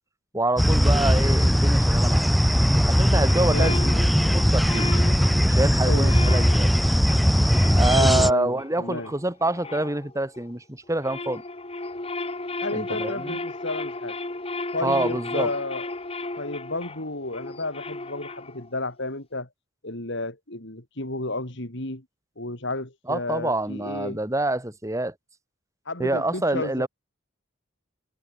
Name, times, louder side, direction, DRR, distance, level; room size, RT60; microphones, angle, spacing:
voice 1, 0.3-2.3 2.9-4.9 5.4-6.7 7.7-11.4 12.7-13.4 14.8-15.5 23.1-25.1 26.0-26.9, right 2 dB, 15° right, 1.9 m, -26 dB
sound 1, 0.6-8.3, equal, ahead, 0.9 m, -19 dB
sound 2, 3.2-10.5 10.9-18.8, left 2 dB, 30° left, 1.7 m, -35 dB
voice 2, 3.5-3.8 5.8-6.1 7.9-9.1 12.6-14.2 14.7-15.9 16.4-19.5 19.8-22.0 22.4-24.2 25.9-26.9, left 2 dB, 60° left, 4.2 m, -32 dB
head